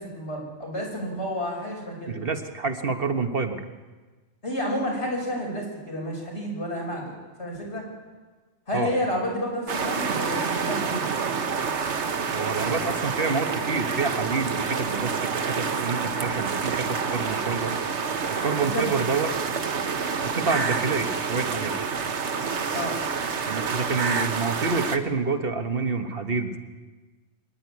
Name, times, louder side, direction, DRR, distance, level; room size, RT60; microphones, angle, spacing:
voice 1, 0.0-2.2 4.4-7.9 8.7-11.1 18.6-19.0 22.7-23.0, equal, 70° left, -1 dB, 6.0 m, -30 dB
voice 2, 2.1-3.6 8.7-8.9 12.3-19.3 20.2-21.7 23.5-26.6, right 4 dB, 55° right, 6 dB, 1.5 m, -28 dB
sound 1, 9.7-25.0, right 5 dB, 75° right, 1.4 m, -28 dB
24.0 x 11.0 x 9.8 m, 1.3 s
omnidirectional pair, 1.2 m